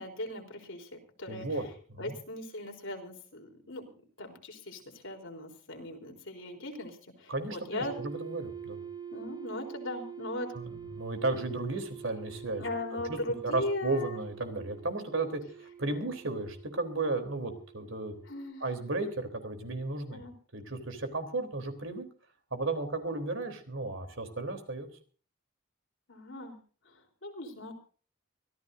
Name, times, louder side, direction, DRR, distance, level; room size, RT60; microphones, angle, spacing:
voice 1, 0.0-1.5 2.0-7.9 9.1-10.5 12.6-14.2 18.3-18.6 20.1-20.3 26.1-26.6 26.9-27.7, left 1 dB, 60° left, 2 dB, 3.9 m, -39 dB
voice 2, 1.3-1.6 1.9-2.2 7.3-8.8 10.5-12.6 13.1-13.2 13.4-18.1 18.6-20.2 20.5-22.0 22.5-24.9, right 2 dB, 60° right, 7 dB, 3.5 m, -34 dB
sound 1, 7.8-18.5, right 8 dB, 20° right, 2.5 m, -46 dB
25.0 x 15.5 x 2.7 m, 0.40 s
head